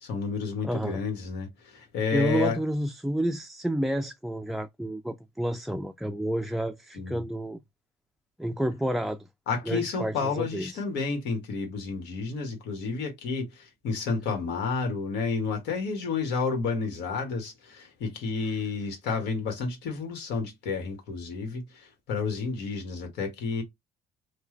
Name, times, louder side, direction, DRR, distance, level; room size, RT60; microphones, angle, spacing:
voice 1, 0.0-2.6 6.9-7.2 9.5-23.6, left 4 dB, 85° left, 1.6 m, -31 dB
voice 2, 0.6-1.0 2.1-7.6 8.4-9.3 9.6-10.8, right 1 dB, ahead, 0.3 m, -30 dB
3.3 x 2.3 x 3.2 m
cardioid pair, 110°, 17 cm